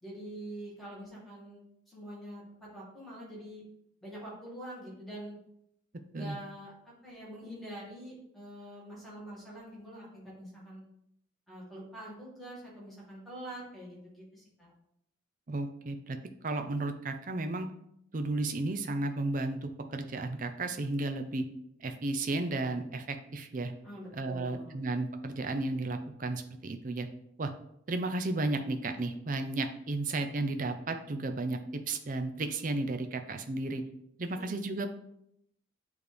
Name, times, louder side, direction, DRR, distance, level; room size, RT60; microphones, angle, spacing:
voice 1, 0.0-3.7 4.0-5.4 6.1-10.8 11.5-14.7 23.8-24.8 34.3-34.4, right 1 dB, ahead, -7 dB, 1.9 m, -45 dB
voice 2, 15.5-16.2 16.4-17.7 18.1-21.4 21.8-23.7 24.1-27.1 27.4-27.5 27.9-31.6 31.9-33.8 34.2-34.9, right 2 dB, 40° right, 7 dB, 0.5 m, -33 dB
8.7 x 3.2 x 3.4 m, 0.76 s
head